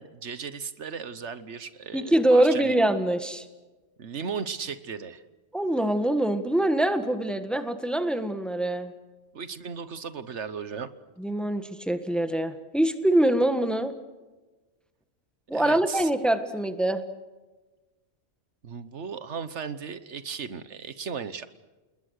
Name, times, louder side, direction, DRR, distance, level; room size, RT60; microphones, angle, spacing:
voice 1, 0.0-2.8 4.0-5.2 9.3-10.9 15.5-16.1 18.6-21.5, right 6 dB, 70° right, 13 dB, 1.4 m, -36 dB
voice 2, 1.9-3.4 5.5-8.9 11.2-13.9 15.5-17.0, right 1 dB, ahead, 8 dB, 1.6 m, -24 dB
29.0 x 20.5 x 6.6 m, 1.2 s
omnidirectional pair, 1.2 m